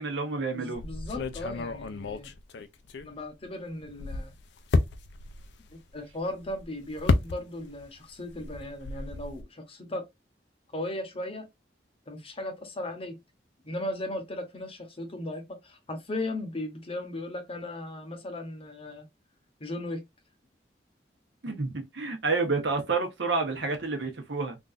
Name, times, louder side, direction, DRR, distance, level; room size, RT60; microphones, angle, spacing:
voice 1, 0.0-0.8 21.4-24.6, right 3 dB, 75° right, 1.0 m, -29 dB
voice 2, 0.5-2.3 3.0-4.3 5.7-10.0 10.7-11.5 12.1-13.2 13.6-19.0 19.6-20.0, left 1 dB, 30° left, 0.9 m, -37 dB
sound 1, 0.7-3.4 3.8-7.9 8.1-9.4, left 3 dB, 70° left, 0.5 m, -31 dB
3.7 x 2.5 x 2.5 m
head